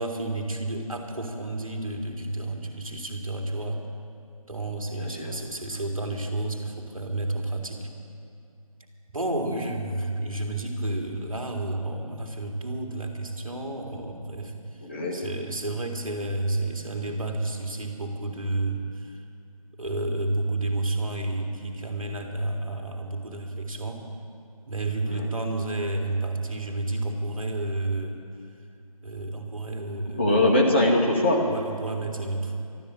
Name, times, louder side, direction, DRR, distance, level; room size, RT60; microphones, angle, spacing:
voice 1, 0.0-3.8 4.4-7.9 9.1-14.5 15.1-19.2 19.8-24.0 24.7-28.2 29.0-30.5 31.5-32.6, right 2 dB, 65° right, 2 dB, 2.4 m, -31 dB
voice 2, 4.9-5.4 14.8-15.2 25.1-25.3 30.2-31.5, left 1 dB, 20° left, -2 dB, 1.0 m, -22 dB
13.0 x 12.5 x 8.6 m, 2.6 s
figure-of-eight pair, 160°, 19 cm